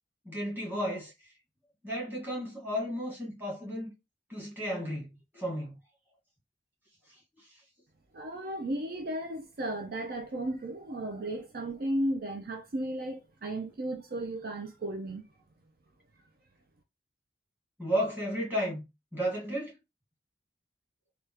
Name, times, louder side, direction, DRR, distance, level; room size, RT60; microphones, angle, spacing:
voice 1, 0.3-1.1 1.8-3.9 4.3-5.8 17.8-19.7, equal, 10° right, 1.7 m, -33 dB
voice 2, 8.1-15.2, right 1 dB, 55° right, 0.5 m, -34 dB
3.4 x 2.3 x 2.8 m
head